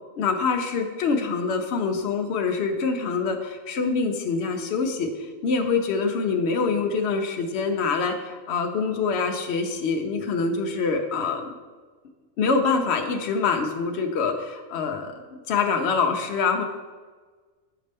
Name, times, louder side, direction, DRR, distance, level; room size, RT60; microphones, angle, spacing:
voice 1, 0.2-11.5 12.4-16.6, left 4 dB, 60° left, 3 dB, 0.8 m, -25 dB
6.5 x 5.3 x 3.4 m, 1.4 s
omnidirectional pair, 1.4 m